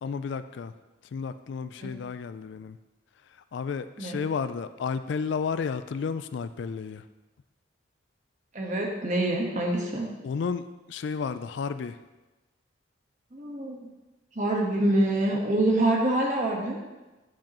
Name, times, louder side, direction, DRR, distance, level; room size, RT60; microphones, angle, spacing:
voice 1, 0.0-0.7 1.1-2.8 3.5-7.0 10.2-12.0, left 5 dB, 60° left, 12 dB, 0.3 m, -32 dB
voice 2, 8.5-10.1 13.3-13.9 14.3-16.8, right 1 dB, 40° right, -1 dB, 1.3 m, -26 dB
9.4 x 7.4 x 3.0 m, 1.1 s
head